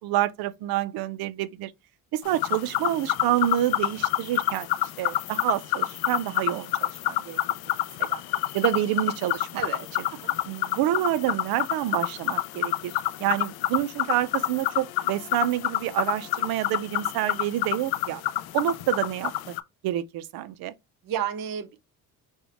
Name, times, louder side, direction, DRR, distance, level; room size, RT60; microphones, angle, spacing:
voice 1, 0.0-1.7 2.1-4.7 5.0-7.4 8.0-8.2 8.5-9.6 10.5-18.2 18.5-19.6 19.8-20.7, right 13 dB, 80° right, 0.6 m, -28 dB
sound 1, 2.2-19.6, left 16 dB, 85° left, 0.5 m, -28 dB
voice 2, 9.5-10.3 21.0-21.8, right 9 dB, 65° right, 0.9 m, -32 dB
4.4 x 2.2 x 3.3 m
cardioid pair, 125°, 36 cm